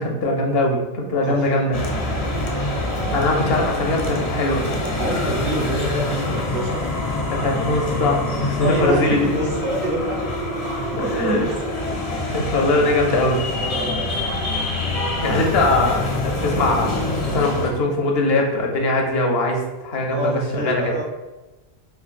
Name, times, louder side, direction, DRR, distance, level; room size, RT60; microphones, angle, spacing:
voice 1, 0.0-1.8 3.1-4.6 7.3-9.2 11.1-11.4 12.3-13.4 15.2-20.8, left 2 dB, 75° left, 1 dB, 0.8 m, -21 dB
voice 2, 1.2-1.6 5.0-6.9 8.6-10.2 10.9-11.5 13.6-14.3 20.1-21.0, right 1 dB, 55° right, -2 dB, 1.0 m, -26 dB
sound 1, 1.7-17.7, left 2 dB, 50° left, 0.5 m, -25 dB
4.5 x 2.1 x 2.4 m, 1.1 s
omnidirectional pair, 1.1 m